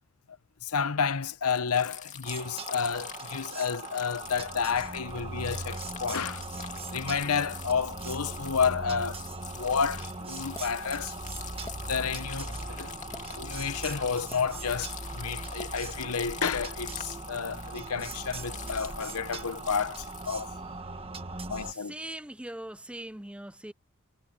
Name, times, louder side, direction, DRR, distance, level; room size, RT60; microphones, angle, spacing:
voice 1, 0.6-6.4 6.9-11.1 11.9-12.9 13.4-20.5 21.5-21.9, left 6 dB, 80° left, 0.8 m, -31 dB
sound 1, 1.5-20.5, left 8 dB, 35° left, 2.5 m, -44 dB
sound 2, 2.2-21.7, right 3 dB, 25° right, 1.5 m, -39 dB
sound 3, 10.5-10.8 11.6-11.8 13.0-13.3 14.3-14.5 15.6-15.7 16.5-16.6, left 2 dB, 15° left, 2.1 m, -43 dB
voice 2, 21.6-23.7, right 1 dB, 5° right, 0.6 m, -41 dB
head